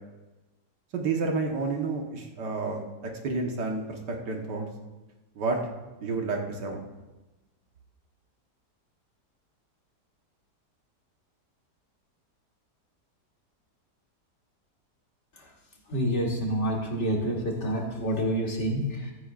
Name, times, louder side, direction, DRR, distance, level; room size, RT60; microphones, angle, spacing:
voice 1, 0.9-4.7 5.4-5.6 6.0-6.8, right 3 dB, 85° right, 1 dB, 2.0 m, -30 dB
voice 2, 15.9-19.1, equal, 45° left, -1 dB, 2.2 m, -28 dB
15.0 x 13.5 x 2.5 m, 1.1 s
omnidirectional pair, 1.8 m